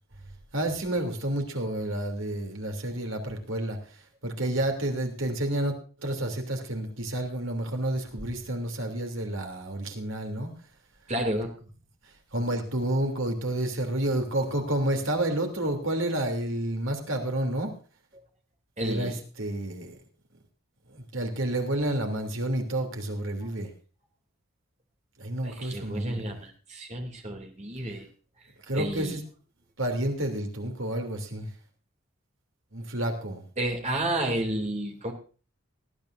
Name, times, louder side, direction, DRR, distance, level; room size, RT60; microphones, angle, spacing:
voice 1, 0.5-3.8 4.2-5.7 6.0-10.5 12.3-17.7 18.8-20.0 20.9-23.7 25.2-26.3 28.7-29.2 29.8-31.5 32.7-33.4, right 1 dB, 65° right, 3 dB, 3.1 m, -30 dB
voice 2, 11.1-11.5 18.8-19.2 23.4-23.5 25.4-28.1 28.7-29.2 33.6-35.1, right 1 dB, 30° right, 2 dB, 2.9 m, -31 dB
19.5 x 12.5 x 2.6 m, 0.37 s
head